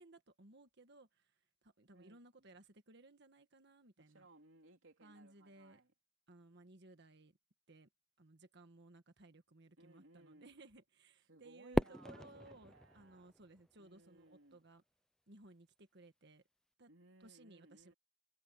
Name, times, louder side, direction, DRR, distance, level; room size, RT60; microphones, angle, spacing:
voice 1, 0.0-4.3 5.0-5.8 6.3-7.3 7.7-7.9 8.2-14.8 15.3-16.4 16.8-16.9 17.2-17.9, right 2 dB, 60° right, 1.7 m, -60 dB
voice 2, 4.0-5.9 9.8-10.6 11.3-13.3 13.8-14.6 16.9-17.9, right 2 dB, 80° right, 3.6 m, -63 dB
Fireworks, 11.7-14.1, equal, 5° left, 0.4 m, -38 dB
head